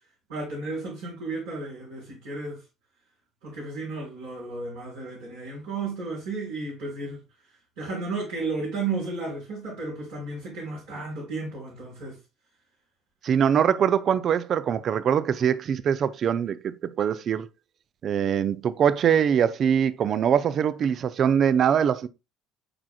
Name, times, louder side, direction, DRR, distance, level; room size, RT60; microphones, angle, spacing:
voice 1, 0.3-2.6 3.4-7.2 7.8-12.2, right 3 dB, 75° right, 3.6 m, -33 dB
voice 2, 13.2-17.5 18.0-22.1, right 8 dB, 45° right, 0.5 m, -23 dB
8.7 x 4.8 x 2.3 m
figure-of-eight pair, 55°, 0 cm